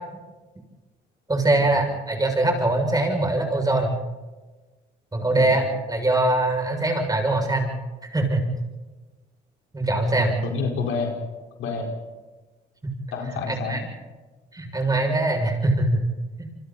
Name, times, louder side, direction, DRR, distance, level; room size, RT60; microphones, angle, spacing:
voice 1, 1.3-4.0 5.1-7.7 8.1-8.5 9.7-10.3 12.8-12.9 13.5-13.8 14.5-16.0 16.4-16.5, right 2 dB, 20° right, 3 dB, 6.8 m, -22 dB
voice 2, 10.2-11.2 11.6-11.9 13.1-13.9, left 4 dB, 85° left, 1 dB, 4.7 m, -29 dB
28.0 x 25.0 x 4.2 m, 1.2 s
cardioid pair, 90°, 20 cm